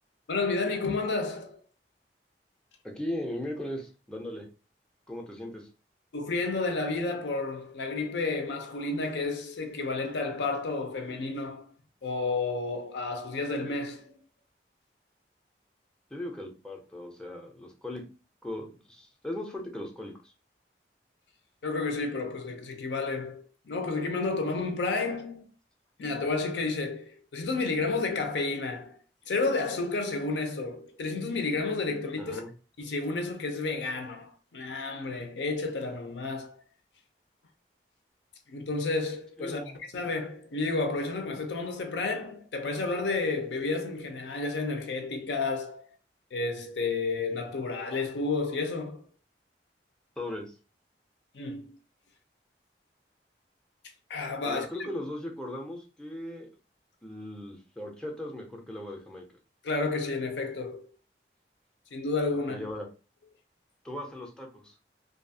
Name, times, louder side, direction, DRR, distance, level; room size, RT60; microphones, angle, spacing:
voice 1, 0.3-1.6 6.1-11.7 12.0-14.2 21.6-25.5 26.0-29.0 29.3-32.4 32.8-36.6 38.5-39.6 39.9-45.9 46.3-49.1 51.3-51.7 54.1-54.9 59.6-60.9 61.9-62.7, left 3 dB, 80° left, 0.5 m, -31 dB
voice 2, 2.8-4.5 5.1-5.7 16.1-18.0 18.4-20.3 32.2-32.5 39.4-39.8 50.2-50.5 54.4-56.5 57.0-59.2 62.5-62.9 63.8-64.7, left 1 dB, 5° left, 0.5 m, -38 dB
2.6 x 2.3 x 2.6 m
head